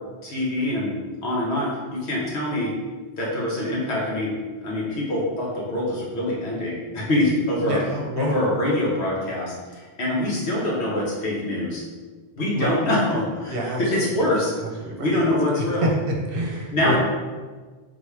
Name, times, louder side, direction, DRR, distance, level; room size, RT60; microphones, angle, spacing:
voice 1, 0.2-1.0 1.2-2.7 3.2-4.3 4.6-7.8 8.2-11.8 12.4-14.5 15.0-15.9 16.7-17.0, left 1 dB, 75° left, -5 dB, 1.3 m, -24 dB
voice 2, 7.6-8.3 12.5-12.7 13.5-14.0 14.8-15.2 15.5-17.0, equal, 60° right, -1 dB, 0.8 m, -27 dB
3.8 x 3.0 x 3.3 m, 1.4 s
omnidirectional pair, 1.1 m